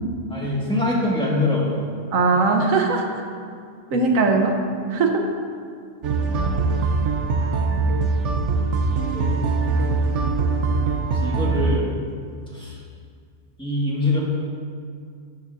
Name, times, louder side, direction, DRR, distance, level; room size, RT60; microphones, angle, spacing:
voice 1, 0.3-1.9 6.3-6.9 8.9-9.5 11.1-11.9 12.5-12.8 13.6-14.2, left 2 dB, 5° left, -5 dB, 1.8 m, -25 dB
voice 2, 2.1-3.0 3.9-4.6 4.9-5.3, right 3 dB, 90° right, 3 dB, 1.4 m, -19 dB
sound 1, 6.0-11.8, right 4 dB, 70° right, 1.0 m, -22 dB
12.5 x 9.1 x 2.7 m, 2.2 s
omnidirectional pair, 1.3 m